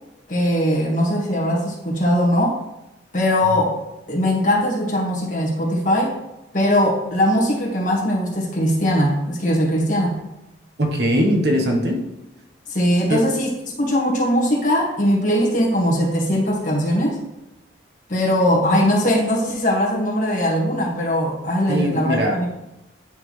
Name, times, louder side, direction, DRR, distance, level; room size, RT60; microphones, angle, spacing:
voice 1, 0.3-2.6 3.1-3.8 4.1-6.2 6.5-10.2 12.7-13.5 13.8-17.2 18.1-22.5, equal, 45° left, -2 dB, 1.6 m, -20 dB
voice 2, 10.8-12.0 13.1-13.2 21.7-22.4, equal, 65° right, 2 dB, 1.0 m, -20 dB
10.0 x 4.2 x 3.2 m, 0.93 s
head